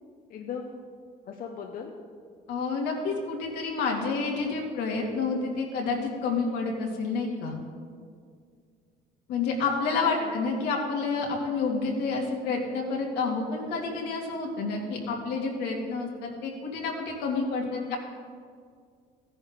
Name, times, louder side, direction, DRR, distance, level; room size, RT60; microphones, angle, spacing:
voice 1, 0.3-0.8 1.2-1.9 10.2-10.5 17.7-17.9, left 7 dB, 55° left, 2 dB, 0.9 m, -38 dB
voice 2, 2.5-7.6 9.3-17.6 17.9-18.0, left 4 dB, 85° left, 0 dB, 2.3 m, -29 dB
15.0 x 10.5 x 3.7 m, 2.1 s
cardioid pair, 110°, 17 cm